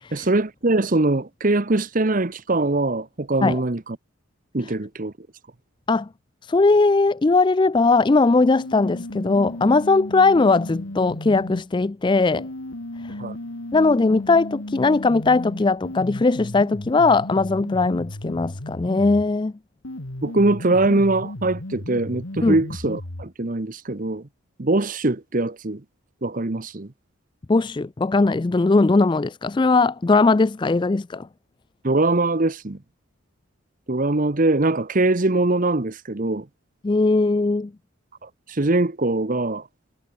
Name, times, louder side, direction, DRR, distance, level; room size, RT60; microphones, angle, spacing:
voice 1, 0.1-4.0 4.5-5.3 13.2-13.4 20.2-24.3 24.6-25.8 26.2-26.9 31.8-32.8 33.9-36.5 38.2-39.7, right 2 dB, 40° right, 1.0 m, -22 dB
voice 2, 6.5-12.5 13.0-13.2 13.7-19.5 22.4-22.6 27.5-31.3 36.8-37.7, left 3 dB, 20° left, 0.3 m, -19 dB
sound 1, 8.3-11.6 12.3-19.3 19.8-23.3, left 1 dB, 70° left, 2.2 m, -35 dB
head